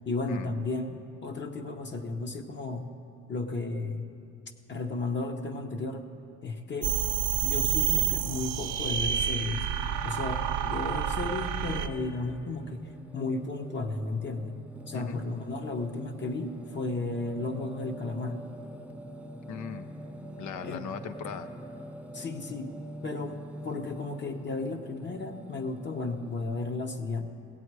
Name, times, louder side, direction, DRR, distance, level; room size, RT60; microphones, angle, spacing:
voice 1, 0.1-2.9 3.3-4.1 4.7-6.0 6.4-6.9 7.4-9.7 10.0-12.8 13.1-14.6 14.9-18.4 20.6-20.8 22.1-22.7 23.0-23.4 23.6-27.3, left 3 dB, 35° left, 5 dB, 0.8 m, -34 dB
sound 1, 6.8-11.9, right 9 dB, 75° right, 0.6 m, -29 dB
Singing, 9.6-26.8, equal, 5° right, 0.5 m, -45 dB
voice 2, 19.5-19.9 20.4-21.5, left 7 dB, 75° left, 10 dB, 0.7 m, -38 dB
16.5 x 8.0 x 4.7 m, 2.6 s
cardioid pair, 90°, 30 cm